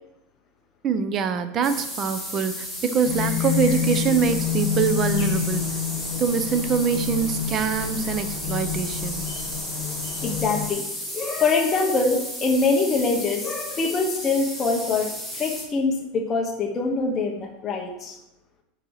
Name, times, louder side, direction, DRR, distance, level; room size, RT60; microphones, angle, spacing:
voice 1, 0.8-5.8 6.2-9.2, right 6 dB, 30° right, 10 dB, 0.7 m, -24 dB
sound 1, 1.6-15.6, equal, 5° right, 2.0 m, -34 dB
sound 2, 3.0-10.7, left 8 dB, 50° left, 2.8 m, -28 dB
voice 2, 10.2-10.8 11.1-18.2, left 3 dB, 20° left, 0 dB, 1.1 m, -24 dB
9.8 x 4.5 x 6.5 m, 0.86 s
supercardioid pair, 160°, 0 cm